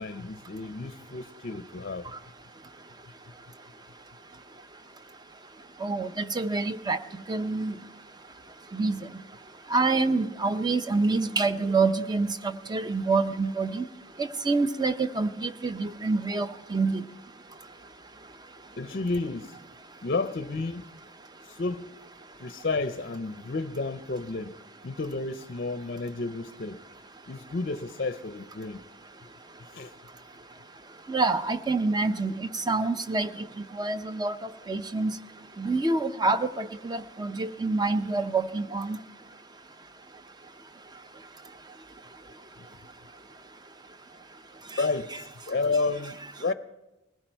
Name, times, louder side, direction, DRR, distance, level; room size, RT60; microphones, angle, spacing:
voice 1, 0.0-2.1 18.8-19.6 20.0-20.8 21.4-21.9 22.4-24.6 24.8-26.8 27.3-28.8 29.7-29.9 42.6-42.7 44.8-46.5, left 3 dB, 45° left, 0.5 m, -31 dB
voice 2, 5.8-7.0 7.3-7.8 8.7-9.0 9.7-13.8 14.2-17.0 31.1-33.3 33.7-34.3 34.7-35.1 35.6-39.0, right 3 dB, 20° right, 0.6 m, -27 dB
20.0 x 15.5 x 4.5 m
head